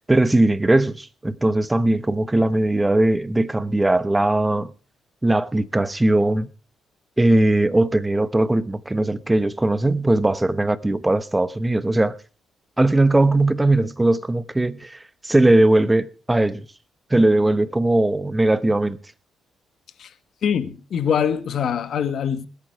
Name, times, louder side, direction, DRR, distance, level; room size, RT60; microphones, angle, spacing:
voice 1, 0.1-4.7 5.2-6.5 7.2-12.2 12.8-16.7 17.1-19.0, right 2 dB, 15° right, 1.0 m, -19 dB
voice 2, 20.4-22.5, left 7 dB, 60° left, 1.3 m, -23 dB
20.0 x 9.0 x 4.6 m
cardioid pair, 90°, 0 cm